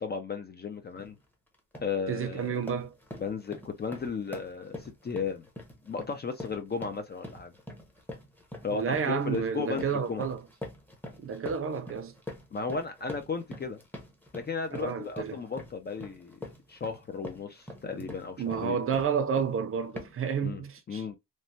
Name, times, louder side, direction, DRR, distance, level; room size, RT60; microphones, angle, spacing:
voice 1, 0.0-1.2 1.8-2.6 3.2-5.5 5.8-7.5 8.6-10.3 12.5-13.8 14.3-16.4 16.7-18.8 20.4-20.6 20.9-21.1, left 5 dB, 30° left, 0.3 m, -35 dB
sound 1, 1.0-1.2 1.5-2.0 2.3-19.6 20.0-20.3, left 1 dB, 5° left, 0.7 m, -44 dB
voice 2, 2.1-2.9 8.7-10.4 11.2-12.1 14.7-15.4 17.8-18.0 18.4-21.1, right 7 dB, 40° right, 0.5 m, -31 dB
3.1 x 2.1 x 2.6 m
cardioid pair, 130°, 36 cm